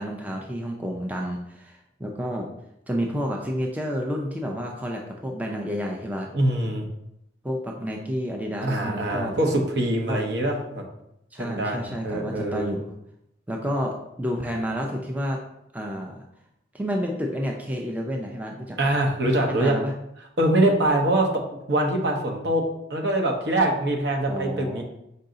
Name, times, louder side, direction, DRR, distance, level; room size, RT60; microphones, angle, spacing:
voice 1, 0.0-2.5 2.9-6.3 7.4-9.4 10.1-10.2 11.3-12.9 13.5-15.4 15.7-16.2 16.7-18.9 19.5-19.9 24.3-24.8, equal, 10° right, 0 dB, 0.4 m, -30 dB
voice 2, 6.3-6.9 8.6-10.8 11.4-12.7 18.8-19.8 20.4-21.3 21.7-22.6 22.9-24.8, right 1 dB, 65° right, 1 dB, 0.8 m, -23 dB
5.4 x 2.6 x 3.8 m, 0.80 s
head